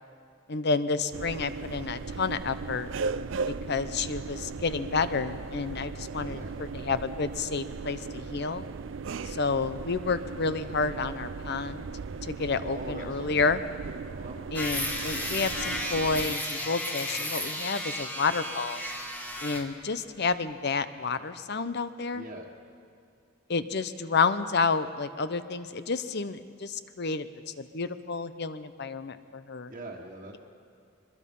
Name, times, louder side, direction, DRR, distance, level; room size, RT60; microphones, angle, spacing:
voice 1, 0.5-2.9 3.5-8.6 9.3-11.9 12.3-13.6 14.5-18.8 19.4-22.2 23.5-27.3 27.6-29.7, left 4 dB, 55° left, 12 dB, 0.8 m, -30 dB
sound 1, 1.1-16.4, right 4 dB, 70° right, 0.5 m, -37 dB
voice 2, 12.6-13.4 14.1-14.4 22.1-22.5 29.7-30.4, right 2 dB, 45° right, -4 dB, 1.6 m, -42 dB
sound 2, 14.5-19.7, left 1 dB, 10° left, 1.7 m, -33 dB
23.0 x 21.5 x 5.5 m, 2.3 s
head